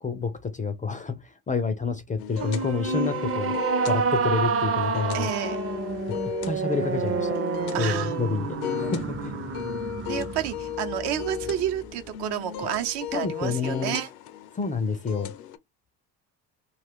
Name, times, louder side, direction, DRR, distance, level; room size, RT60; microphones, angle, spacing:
voice 1, 0.0-3.6 3.9-5.3 6.1-7.4 7.8-9.3 13.1-14.0 14.6-15.3, left 5 dB, 20° left, 0.4 m, -29 dB
sound 1, 2.2-15.6, left 11 dB, 80° left, 0.7 m, -36 dB
sound 2, 2.4-11.8, right 5 dB, 30° right, 0.7 m, -29 dB
voice 2, 5.1-5.6 7.7-8.1 10.1-14.1, right 11 dB, 60° right, 0.8 m, -30 dB
2.4 x 2.3 x 3.6 m
hypercardioid pair, 75°, 46 cm